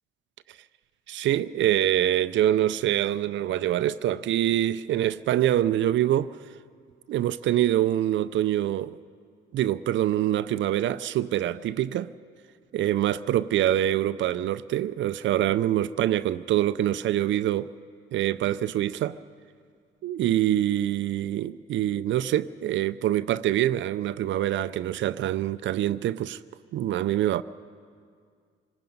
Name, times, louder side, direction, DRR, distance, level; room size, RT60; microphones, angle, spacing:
voice 1, 1.1-6.3 7.1-9.0 9.5-12.1 12.7-17.7 18.1-19.2 20.0-26.4 26.7-27.4, right 12 dB, 70° right, 0.5 m, -25 dB
26.0 x 19.5 x 5.4 m
cardioid pair, 90°, 20 cm